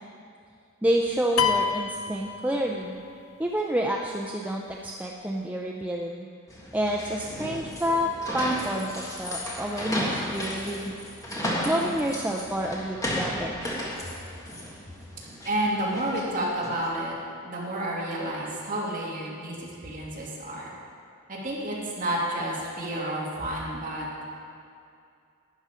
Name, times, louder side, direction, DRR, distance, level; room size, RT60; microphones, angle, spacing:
voice 1, 0.8-3.0 3.4-6.3 6.7-10.9 11.6-13.6, equal, 5° right, -1 dB, 0.5 m, -28 dB
sound 1, 1.4-3.1, left 7 dB, 70° left, 0.6 m, -27 dB
sound 2, 6.5-16.9, equal, 15° left, 1.6 m, -34 dB
voice 2, 15.4-17.1 17.4-20.7 21.3-24.2, right 1 dB, 40° right, -5 dB, 2.5 m, -30 dB
12.0 x 9.6 x 5.0 m, 2.4 s
head